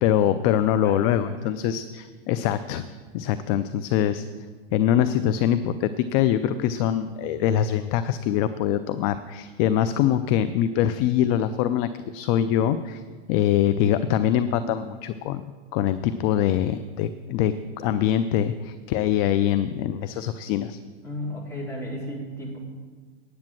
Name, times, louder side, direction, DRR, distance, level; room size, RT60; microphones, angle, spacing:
voice 1, 0.0-2.9 3.1-4.3 4.7-13.0 13.3-15.4 15.7-20.8, left 10 dB, 35° left, 12 dB, 0.4 m, -23 dB
voice 2, 0.8-1.3 21.0-22.6, left 1 dB, 10° left, -5 dB, 3.7 m, -34 dB
9.6 x 8.4 x 7.5 m, 1.5 s
hypercardioid pair, 125°, 32 cm